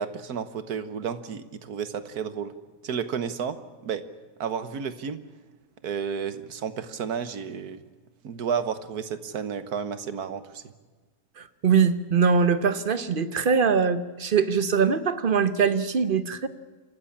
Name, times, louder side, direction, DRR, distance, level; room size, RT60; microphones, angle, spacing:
voice 1, 0.0-2.5 2.8-4.0 4.4-5.2 5.8-7.8 8.2-10.6, right 7 dB, 65° right, 11 dB, 1.6 m, -32 dB
voice 2, 11.4-16.5, right 6 dB, 40° right, 12 dB, 0.9 m, -22 dB
26.5 x 14.5 x 8.6 m, 1.3 s
omnidirectional pair, 1.8 m